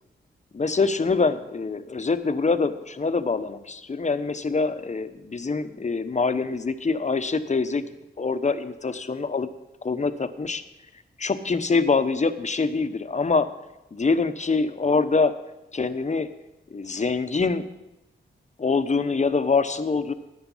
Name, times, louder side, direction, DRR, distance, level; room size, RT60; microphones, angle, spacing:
voice 1, 0.5-7.8 8.2-9.5 9.8-10.6 11.2-13.5 13.9-15.3 15.7-16.3 16.7-17.7 18.6-20.1, left 4 dB, 35° left, 10 dB, 0.9 m, -24 dB
13.5 x 9.4 x 5.6 m, 0.95 s
cardioid pair, 65°, 20 cm